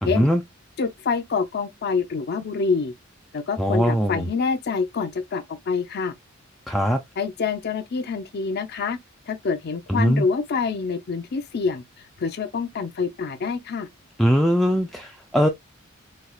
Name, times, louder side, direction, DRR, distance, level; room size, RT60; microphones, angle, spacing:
voice 1, 0.0-0.4 3.6-4.3 6.7-7.0 9.9-10.3 14.2-15.5, equal, ahead, 0.3 m, -21 dB
voice 2, 0.8-2.9 3.3-6.1 7.2-9.0 9.3-11.8 12.2-13.9, left 5 dB, 50° left, 0.5 m, -26 dB
4.2 x 2.3 x 2.3 m
head